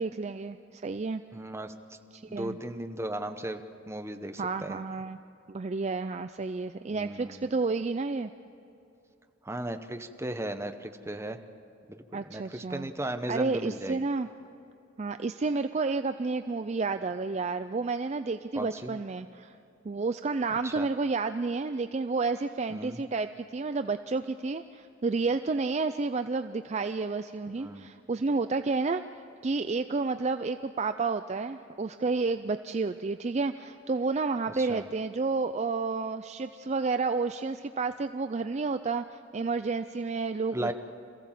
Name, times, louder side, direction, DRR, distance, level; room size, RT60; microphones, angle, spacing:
voice 1, 0.0-1.2 2.1-2.6 4.4-5.2 5.5-8.3 12.1-12.9 13.3-14.3 15.0-19.6 19.8-29.0 29.4-40.7, right 4 dB, 35° right, 10 dB, 0.4 m, -30 dB
voice 2, 1.3-1.7 2.3-3.6 3.9-4.8 6.9-7.5 9.4-11.4 11.9-14.1 18.6-19.0 20.6-20.9 22.7-23.0 27.6-27.9 34.5-34.8 40.5-40.7, right 1 dB, 15° right, 7 dB, 0.9 m, -36 dB
27.0 x 15.5 x 7.5 m, 2.7 s
head